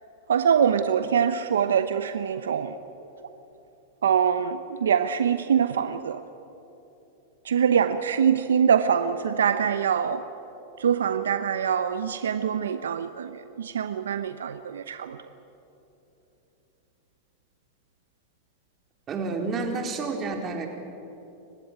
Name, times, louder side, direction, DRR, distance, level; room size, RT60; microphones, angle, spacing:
voice 1, 0.3-2.8 4.0-6.2 7.4-10.2 10.8-15.2, right 7 dB, 80° right, 10 dB, 0.9 m, -24 dB
voice 2, 19.1-20.7, right 4 dB, 30° right, 2 dB, 4.3 m, -29 dB
29.0 x 16.0 x 8.9 m, 3.0 s
hypercardioid pair, 105°, 0 cm